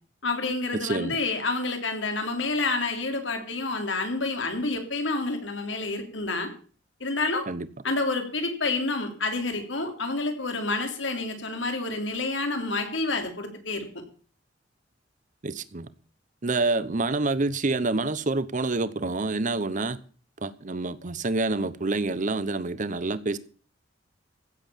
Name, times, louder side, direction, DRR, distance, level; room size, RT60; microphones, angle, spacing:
voice 1, 0.2-6.5 7.0-7.4 7.8-13.9, left 3 dB, 90° left, 3.2 m, -28 dB
voice 2, 0.7-1.2 7.5-7.7 15.4-15.9 16.4-20.0 20.4-23.4, right 3 dB, 45° right, 0.9 m, -27 dB
15.5 x 7.7 x 7.0 m
head